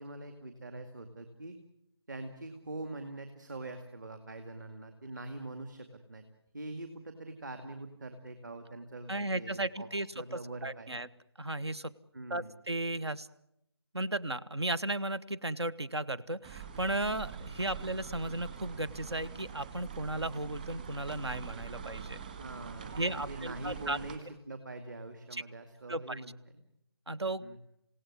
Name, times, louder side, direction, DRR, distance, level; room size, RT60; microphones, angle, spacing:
voice 1, 0.0-1.6 2.1-6.2 6.5-9.9 10.2-10.9 12.1-12.5 22.4-26.6 27.4-27.7, right 2 dB, 45° right, 8 dB, 2.3 m, -44 dB
voice 2, 9.1-11.1 11.4-11.9 12.3-13.3 13.9-22.2 23.0-24.0 25.3-25.4 25.9-26.2 27.1-27.4, right 1 dB, 70° right, 14 dB, 1.3 m, -35 dB
sound 1, 16.4-24.2, right 7 dB, 20° right, 1.8 m, -44 dB
28.0 x 17.5 x 9.6 m, 0.82 s
figure-of-eight pair, 160°, 14 cm